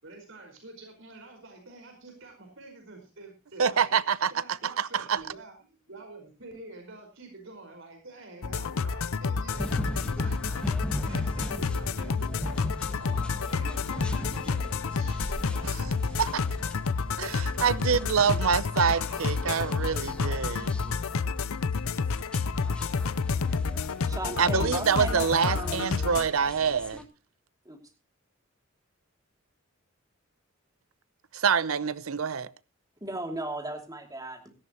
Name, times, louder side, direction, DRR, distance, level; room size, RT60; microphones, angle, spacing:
voice 1, 0.0-3.9 4.3-16.1 18.3-18.6 19.0-19.2, right 2 dB, 65° right, 5.0 m, -48 dB
voice 2, 3.6-4.3 4.6-5.2 16.2-16.4 17.2-20.7 24.4-27.0 31.3-32.5, right 6 dB, 85° right, 0.7 m, -26 dB
sound 1, 8.4-26.3, left 5 dB, 85° left, 0.6 m, -30 dB
sound 2, 9.5-27.0, equal, 5° left, 1.4 m, -40 dB
voice 3, 23.9-26.0 27.6-27.8 33.0-34.5, right 2 dB, 15° right, 2.7 m, -36 dB
17.0 x 14.0 x 3.0 m
head